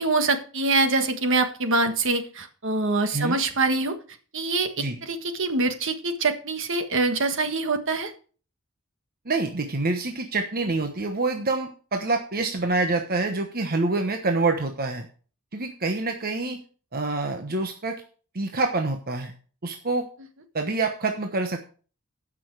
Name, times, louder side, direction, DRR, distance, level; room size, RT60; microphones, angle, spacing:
voice 1, 0.0-3.9 4.3-8.1, right 3 dB, 60° right, 7 dB, 1.6 m, -24 dB
voice 2, 9.3-15.1 15.5-16.6 16.9-18.0 18.3-19.3 19.6-20.1 20.5-21.6, right 3 dB, 45° right, 4 dB, 1.1 m, -26 dB
15.5 x 6.2 x 4.7 m, 0.40 s
head